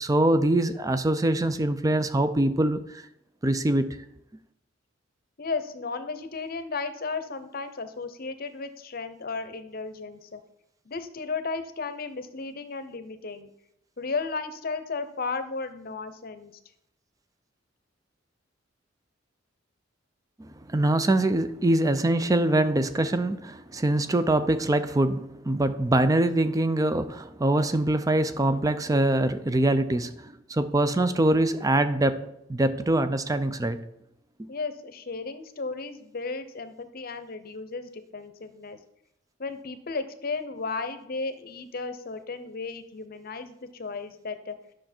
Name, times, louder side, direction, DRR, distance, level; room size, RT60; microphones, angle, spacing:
voice 1, 0.0-3.0 3.4-4.0 20.4-32.2 32.5-33.8 34.4-34.5, right 1 dB, 20° right, 0.5 m, -24 dB
voice 2, 5.4-10.4 10.9-13.5 14.0-16.6 34.5-38.8 39.4-44.6, left 4 dB, 50° left, 0.7 m, -34 dB
10.5 x 6.3 x 4.4 m
head